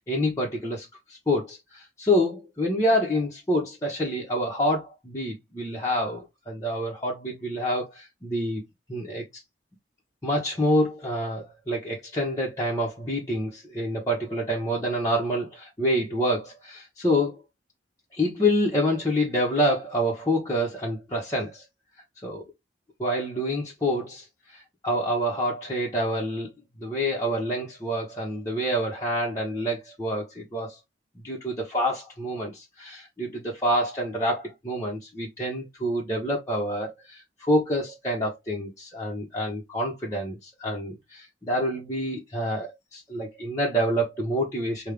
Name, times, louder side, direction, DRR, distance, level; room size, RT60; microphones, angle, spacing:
voice 1, 0.1-8.6 8.9-9.2 10.2-17.4 18.1-21.6 22.2-22.4 23.0-24.2 24.5-26.5 26.8-30.8 31.2-44.9, equal, 20° left, 1.1 m, -27 dB
5.4 x 2.4 x 3.4 m
head